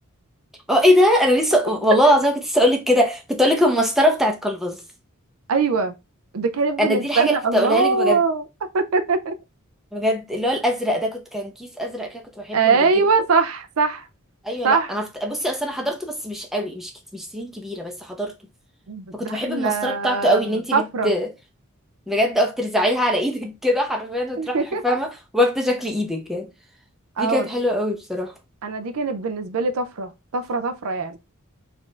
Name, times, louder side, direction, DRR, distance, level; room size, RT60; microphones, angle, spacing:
voice 1, 0.7-4.8 6.8-8.2 9.9-12.8 14.4-18.3 19.1-21.3 22.1-24.6 24.8-26.5 27.2-28.3, equal, ahead, 0.7 m, -22 dB
voice 2, 5.5-5.9 6.3-8.4 8.7-9.4 12.5-14.1 14.6-14.9 18.9-20.5 20.7-21.1 24.4-25.0 27.2-27.5 28.6-31.2, right 4 dB, 75° right, 0.5 m, -22 dB
4.2 x 2.6 x 3.2 m
head